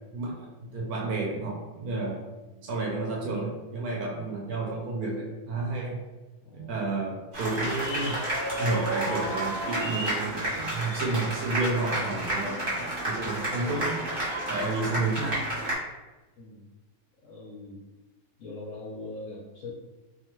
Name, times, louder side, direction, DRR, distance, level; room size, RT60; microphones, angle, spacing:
voice 1, 0.1-2.2 2.6-6.0 6.5-8.2 8.6-14.0 14.5-15.4, right 3 dB, 70° right, -1 dB, 1.0 m, -31 dB
voice 2, 6.4-6.9 16.4-16.6 17.2-17.8 18.4-19.7, left 2 dB, 65° left, -6 dB, 0.8 m, -42 dB
sound 1, 7.3-15.7, right 1 dB, 35° right, 1.0 m, -31 dB
2.8 x 2.3 x 2.9 m, 1.1 s
omnidirectional pair, 1.8 m